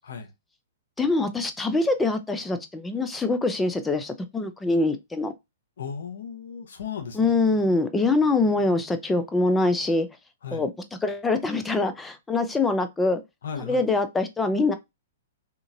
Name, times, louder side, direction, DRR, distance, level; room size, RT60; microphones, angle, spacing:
voice 1, 1.0-5.3 7.1-10.1 10.5-10.7 11.0-13.2 13.6-14.7, left 3 dB, 10° left, 0.5 m, -24 dB
voice 2, 5.8-7.3 10.4-10.6 13.4-13.8, left 6 dB, 70° left, 0.9 m, -35 dB
2.9 x 2.5 x 2.5 m
hypercardioid pair, 125°, 0 cm